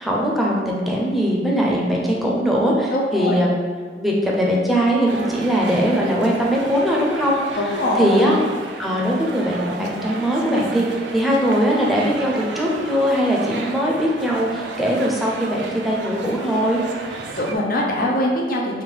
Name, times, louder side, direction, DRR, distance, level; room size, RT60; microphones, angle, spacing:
voice 1, 0.0-3.6 4.0-8.4 8.8-16.8, equal, ahead, -4 dB, 0.7 m, -20 dB
voice 2, 2.9-3.4 7.5-8.2 17.4-18.8, left 1 dB, 55° left, -1 dB, 0.7 m, -22 dB
sound 1, 5.1-17.6, right 3 dB, 75° right, 0.5 m, -33 dB
3.6 x 2.6 x 4.6 m, 1.5 s
head